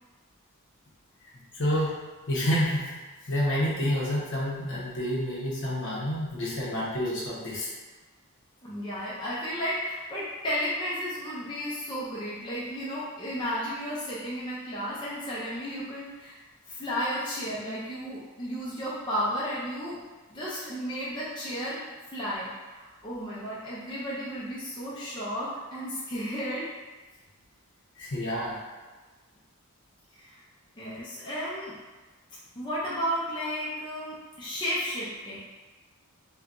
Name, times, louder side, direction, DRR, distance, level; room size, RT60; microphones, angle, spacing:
voice 1, 1.5-1.9 2.3-7.7 28.0-28.6, equal, 55° left, -5 dB, 0.9 m, -28 dB
voice 2, 8.6-16.4 16.7-20.0 20.3-21.8 22.1-26.7 30.1-30.4 30.8-31.8 32.6-35.4, equal, 20° left, -9 dB, 0.5 m, -33 dB
4.4 x 2.2 x 2.5 m, 1.3 s
head